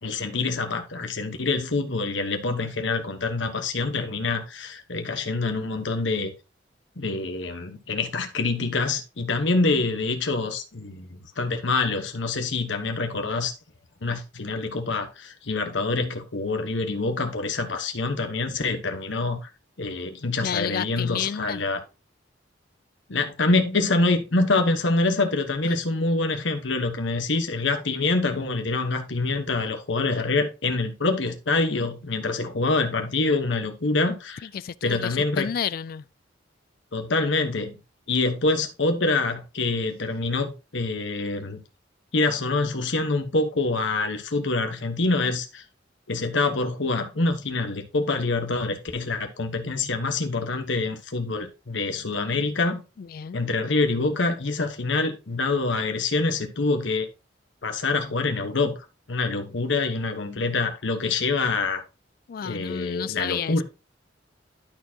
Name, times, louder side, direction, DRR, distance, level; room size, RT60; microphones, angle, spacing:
voice 1, 0.0-6.3 7.0-13.5 14.0-19.5 19.8-21.8 23.1-34.5 34.8-35.5 36.9-37.7 38.1-41.6 42.1-45.6 46.1-52.8 53.3-57.1 57.6-58.8 59.1-61.8 62.4-63.6, left 3 dB, 75° left, 1.2 m, -26 dB
voice 2, 20.4-21.6 25.6-25.8 34.4-36.0 53.0-53.5 62.3-63.6, left 8 dB, 50° left, 0.3 m, -31 dB
12.0 x 4.4 x 2.8 m
head